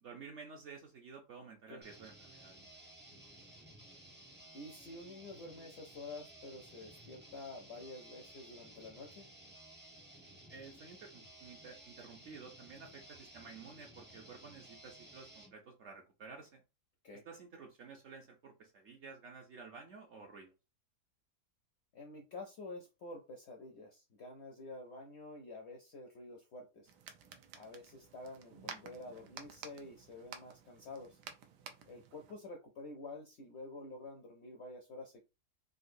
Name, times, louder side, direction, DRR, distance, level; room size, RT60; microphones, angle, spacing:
voice 1, 0.0-2.6 10.5-16.6 17.2-20.5, right 5 dB, 65° right, 2 dB, 0.7 m, -52 dB
sound 1, 1.8-15.5, right 1 dB, 15° right, 0.4 m, -56 dB
voice 2, 4.5-9.3 17.0-17.2 21.9-26.9 27.5-31.2 31.9-35.2, left 2 dB, 65° left, 2 dB, 0.7 m, -49 dB
sound 2, 26.9-32.3, right 7 dB, 85° right, 1.2 m, -52 dB
3.8 x 2.3 x 2.5 m, 0.27 s
omnidirectional pair, 1.7 m